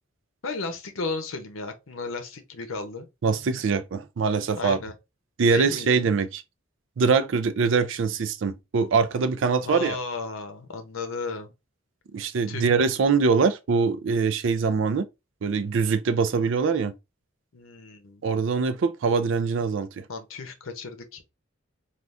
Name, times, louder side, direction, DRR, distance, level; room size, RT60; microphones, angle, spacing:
voice 1, 0.4-3.1 4.5-4.9 5.5-6.0 9.6-11.5 12.5-12.7 17.5-18.2 20.1-21.2, left 3 dB, 85° left, 0.7 m, -34 dB
voice 2, 3.2-4.8 5.4-6.4 7.0-10.0 12.1-15.0 15.4-16.9 18.2-20.0, right 5 dB, 70° right, 0.4 m, -23 dB
3.4 x 2.4 x 2.4 m
head